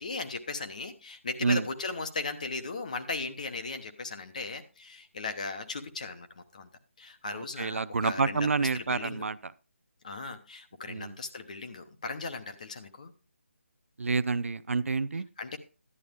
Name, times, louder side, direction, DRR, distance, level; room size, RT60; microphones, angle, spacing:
voice 1, 0.0-6.7 7.0-9.2 10.0-13.1 15.4-15.6, left 3 dB, 35° left, 7 dB, 1.0 m, -37 dB
voice 2, 7.3-9.5 10.9-11.2 14.0-15.3, right 4 dB, 75° right, 16 dB, 0.5 m, -28 dB
11.0 x 9.3 x 3.5 m, 0.32 s
hypercardioid pair, 175°, 7 cm